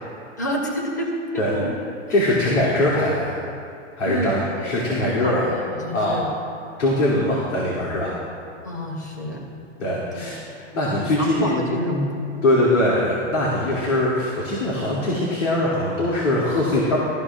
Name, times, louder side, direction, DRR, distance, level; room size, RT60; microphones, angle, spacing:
voice 1, 0.4-1.7 2.5-2.6 4.0-4.7 5.0-6.3 8.6-9.5 10.1-10.3 10.8-12.1, equal, 15° left, 0 dB, 0.4 m, -28 dB
voice 2, 2.1-3.3 4.0-5.5 5.9-6.2 6.8-8.1 9.8-11.7 12.4-17.0, left 1 dB, 80° left, -5 dB, 2.8 m, -22 dB
17.5 x 13.5 x 2.5 m, 2.5 s
hypercardioid pair, 180°, 37 cm